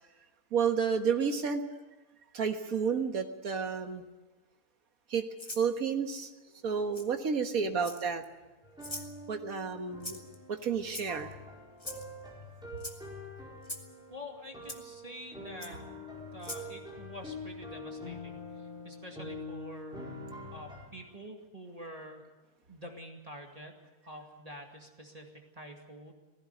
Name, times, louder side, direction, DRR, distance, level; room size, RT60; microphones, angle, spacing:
voice 1, 0.5-1.6 2.3-4.0 5.1-5.3 5.6-6.3 6.6-8.2 9.3-10.2 10.5-11.4, right 6 dB, 65° right, 6 dB, 1.9 m, -31 dB
Rattle (instrument), 5.4-5.7 6.9-7.1 7.8-8.2 8.8-9.1 10.0-10.4 10.9-11.3 11.8-12.1 12.8-13.0 13.6-13.9 14.7-14.8 15.6-15.7 16.4-16.7, left 1 dB, 15° left, 1.8 m, -41 dB
sound 1, 8.6-20.9, left 2 dB, 5° right, 4.5 m, -45 dB
voice 2, 14.1-15.8 16.3-20.0 20.5-22.2 22.7-23.7 24.0-26.1, equal, 25° right, 1 dB, 2.2 m, -47 dB
18.5 x 16.0 x 9.5 m, 1.2 s
omnidirectional pair, 1.7 m